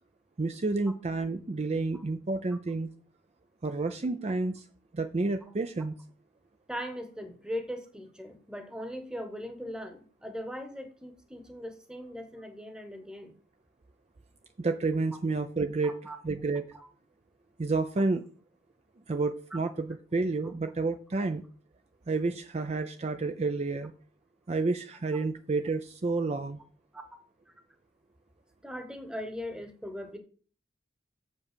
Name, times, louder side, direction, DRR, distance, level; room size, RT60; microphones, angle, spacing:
voice 1, 0.4-2.9 3.6-4.7 4.9-6.0 14.6-15.9 16.2-16.6 17.6-18.2 19.1-21.4 22.1-23.9 24.5-26.6, right 3 dB, 35° right, 9 dB, 0.4 m, -30 dB
voice 2, 6.7-13.3 15.8-16.2 16.7-16.9 19.5-19.6 26.9-27.0 28.6-30.2, equal, 5° right, 8 dB, 1.1 m, -39 dB
7.1 x 5.3 x 6.7 m, 0.41 s
head